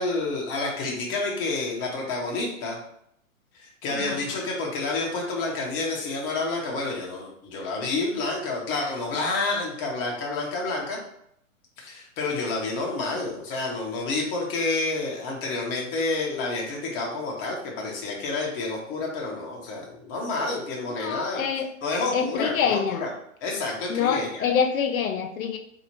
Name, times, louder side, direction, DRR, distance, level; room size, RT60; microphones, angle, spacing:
voice 1, 0.0-2.8 3.5-11.0 11.8-21.5 21.8-23.1 23.4-24.4, left 3 dB, 30° left, -1 dB, 1.0 m, -29 dB
voice 2, 3.9-4.2 21.0-21.7 22.1-23.0 23.9-25.6, left 7 dB, 90° left, 5 dB, 0.6 m, -26 dB
4.1 x 2.8 x 2.8 m, 0.71 s
hypercardioid pair, 130°, 41 cm